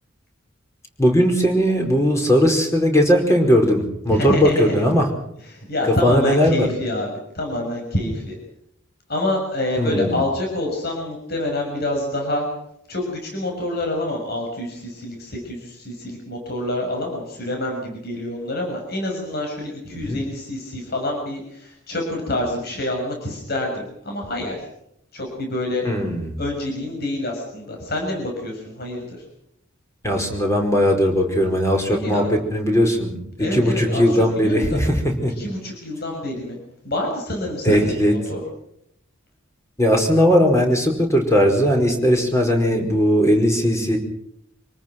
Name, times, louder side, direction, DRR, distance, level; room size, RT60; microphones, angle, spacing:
voice 1, 1.0-5.1 6.0-6.7 9.8-10.2 19.9-20.2 25.8-26.4 30.0-35.3 37.6-38.1 39.8-44.0, equal, 15° left, 3 dB, 5.0 m, -18 dB
voice 2, 4.1-4.8 5.4-8.3 9.1-12.5 12.9-24.6 25.1-25.8 26.4-29.2 31.9-32.3 33.4-34.8 35.4-36.6 36.8-38.4, left 1 dB, 50° left, 1 dB, 6.4 m, -27 dB
26.5 x 19.0 x 6.1 m, 0.74 s
head